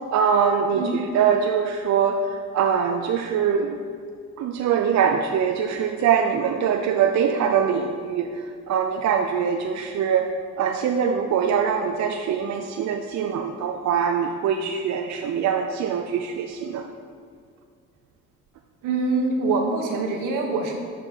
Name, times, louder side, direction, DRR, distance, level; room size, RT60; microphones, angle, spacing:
voice 1, 0.1-3.8 4.4-10.3 10.6-16.8, right 7 dB, 60° right, 5 dB, 0.5 m, -23 dB
voice 2, 18.8-20.8, right 3 dB, 80° right, 2 dB, 1.2 m, -24 dB
6.7 x 5.9 x 4.5 m, 2.2 s
cardioid pair, 95°, 31 cm